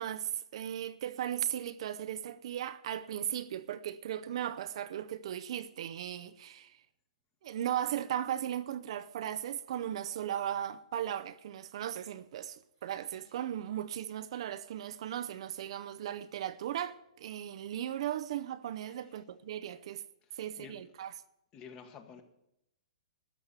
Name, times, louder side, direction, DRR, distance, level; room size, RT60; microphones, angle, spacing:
voice 1, 0.0-6.7 7.4-20.0 20.4-21.1, right 10 dB, 50° right, 0.6 m, -37 dB
voice 2, 21.5-22.2, left 6 dB, 20° left, 1.2 m, -49 dB
13.0 x 7.0 x 8.1 m
hypercardioid pair, 165°, 4 cm